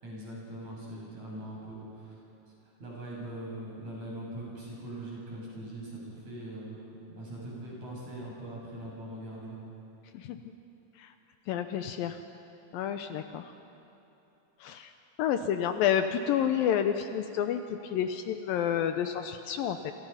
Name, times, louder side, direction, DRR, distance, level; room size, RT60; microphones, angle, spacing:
voice 1, 0.0-2.1 2.8-6.8 7.1-9.6, right 1 dB, 45° right, -4 dB, 8.9 m, -41 dB
voice 2, 11.5-12.2 12.7-13.4 14.6-14.9 15.2-19.9, left 9 dB, 75° left, 8 dB, 2.4 m, -29 dB
29.5 x 27.5 x 5.7 m, 2.9 s
omnidirectional pair, 4.4 m